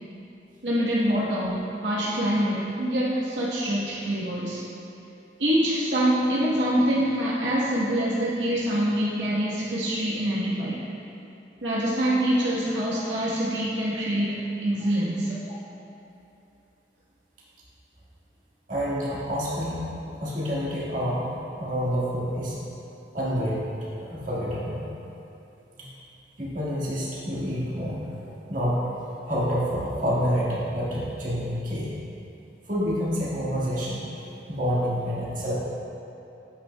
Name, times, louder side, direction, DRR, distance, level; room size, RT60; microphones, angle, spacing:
voice 1, 0.6-4.7 5.4-10.8 11.6-15.4, right 1 dB, 85° right, -7 dB, 1.2 m, -25 dB
voice 2, 18.7-19.9 20.1-22.6 23.1-23.6 24.1-24.8 25.8-25.9 26.4-28.9 29.3-31.9 32.7-34.0 34.5-35.5, equal, 45° right, -8 dB, 1.7 m, -28 dB
8.9 x 8.3 x 2.3 m, 2.8 s
head